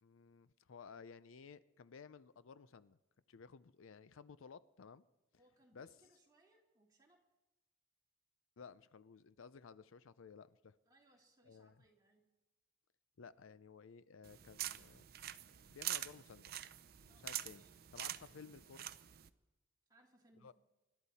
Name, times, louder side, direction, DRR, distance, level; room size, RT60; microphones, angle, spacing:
voice 1, 0.0-3.0 3.3-5.0 5.7-6.1 8.6-10.7 11.5-11.8 13.2-15.0 15.7-16.5 17.1-17.6 17.9-18.9 20.4-20.5, left 5 dB, 80° left, 0.5 m, -56 dB
voice 2, 5.4-7.2 10.9-12.2 17.1-17.9 19.9-20.5, right 2 dB, 20° right, 2.2 m, -70 dB
sound 1, 14.2-19.3, right 13 dB, 50° right, 0.5 m, -45 dB
25.5 x 11.5 x 4.2 m
head